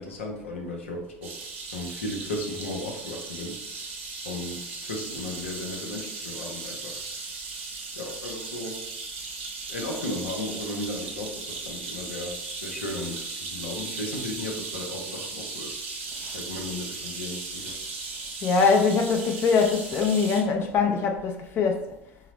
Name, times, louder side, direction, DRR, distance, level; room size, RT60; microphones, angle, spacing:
voice 1, 0.0-1.4 1.7-3.6 4.2-7.0 8.0-8.8 9.7-15.8 16.3-17.9, left 2 dB, 85° left, 0.6 m, -35 dB
sound 1, 1.2-20.4, right 4 dB, 80° right, 0.6 m, -37 dB
voice 2, 18.4-21.9, left 5 dB, 40° left, 0.5 m, -23 dB
4.7 x 2.0 x 3.0 m
hypercardioid pair, 80°, 6 cm